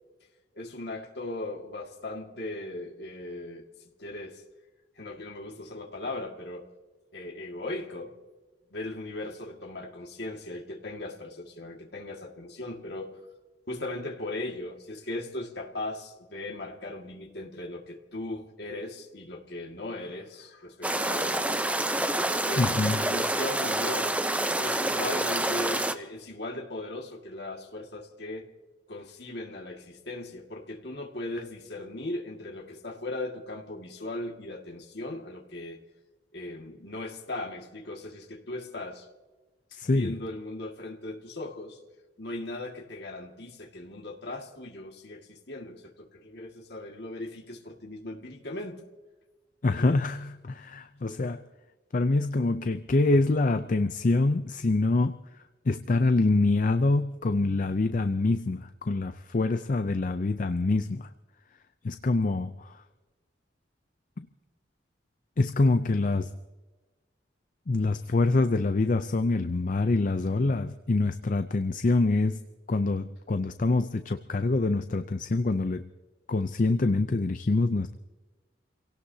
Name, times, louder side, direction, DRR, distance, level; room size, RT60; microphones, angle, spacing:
voice 1, 0.5-3.7 4.0-4.4 5.0-6.7 7.1-8.1 8.7-13.2 13.7-21.6 22.5-28.5 28.9-35.8 36.3-39.1 39.7-41.8 42.2-48.9 49.8-50.0, left 2 dB, 60° left, 2 dB, 2.0 m, -38 dB
sound 1, 20.8-25.9, right 1 dB, 5° right, 0.6 m, -27 dB
voice 2, 22.6-23.0 39.8-40.1 49.6-51.4 51.9-55.2 55.7-61.1 61.8-62.8 65.4-66.3 67.7-72.4 72.7-75.9 76.3-77.9, left 3 dB, 45° left, 10 dB, 0.5 m, -25 dB
29.5 x 17.5 x 2.8 m, 1.2 s
head